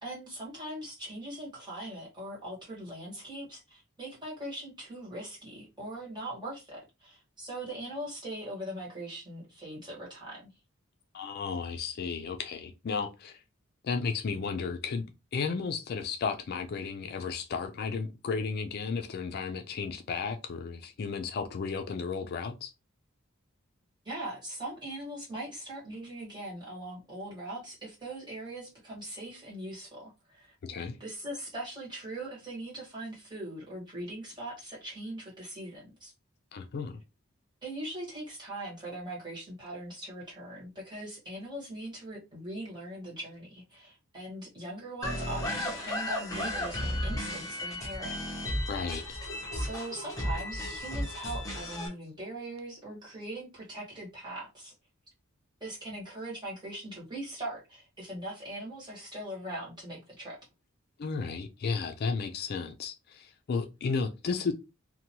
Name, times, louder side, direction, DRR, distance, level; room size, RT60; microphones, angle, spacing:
voice 1, 0.0-10.4 24.0-30.5 31.0-36.1 37.6-48.2 49.5-54.7 55.6-60.4, right 1 dB, 20° right, 1.4 m, -41 dB
voice 2, 11.1-13.4 13.8-15.0 15.3-22.7 30.6-31.0 36.5-37.0 48.7-49.2 61.0-64.5, left 5 dB, 50° left, 0.4 m, -33 dB
sound 1, 45.0-51.9, left 1 dB, 15° left, 0.8 m, -34 dB
2.9 x 2.2 x 2.8 m
head